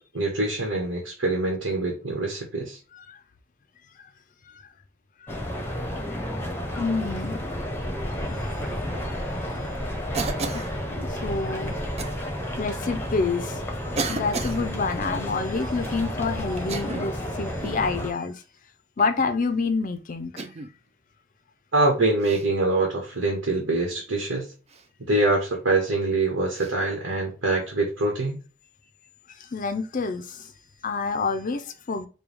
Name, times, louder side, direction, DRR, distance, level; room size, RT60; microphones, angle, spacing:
voice 1, 0.1-2.8 21.7-24.5 25.1-28.4, right 2 dB, 80° right, 0 dB, 1.2 m, -24 dB
voice 2, 5.2-5.8 6.7-7.5 8.3-8.5 9.1-9.2 10.5-10.6 11.1-11.8 12.6-13.6 14.1-18.4 19.0-20.5 29.3-30.5 30.8-32.1, left 4 dB, 45° left, 8 dB, 0.5 m, -28 dB
sound 1, 5.3-18.1, equal, 10° left, 0.8 m, -31 dB
Cough, 10.1-10.7 12.0-12.2 13.1-13.2 14.0-14.6 16.6-17.2 17.6-17.9 19.0-19.3 20.4-20.7 22.2-22.5 24.7-24.9 26.6-26.7, right 4 dB, 35° right, 0.4 m, -33 dB
4.6 x 2.3 x 3.3 m, 0.34 s
head